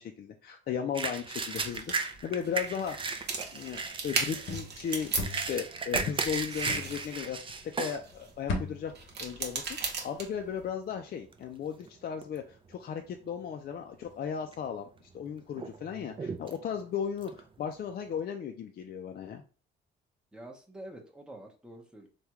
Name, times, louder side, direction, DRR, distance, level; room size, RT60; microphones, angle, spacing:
voice 1, 0.0-3.1 3.5-7.4 7.6-19.4, left 8 dB, 50° left, 4 dB, 0.4 m, -36 dB
sound 1, 0.9-8.0 8.5-8.6 9.1-9.5 10.2-10.4 10.7-11.9 12.2-12.7 13.1-13.2 14.1-14.7 15.0-18.1, right 4 dB, 25° right, 0.4 m, -36 dB
sound 2, 1.4-5.7 6.0-8.3 8.9-10.6, right 4 dB, 55° right, 0.9 m, -37 dB
sound 3, 4.0-7.8 8.1-10.1 10.4-10.7, left 3 dB, 70° left, 0.8 m, -39 dB
voice 2, 20.3-22.1, right 1 dB, 5° right, 1 dB, 0.8 m, -47 dB
3.4 x 2.2 x 2.9 m, 0.38 s
cardioid pair, 90°, 20 cm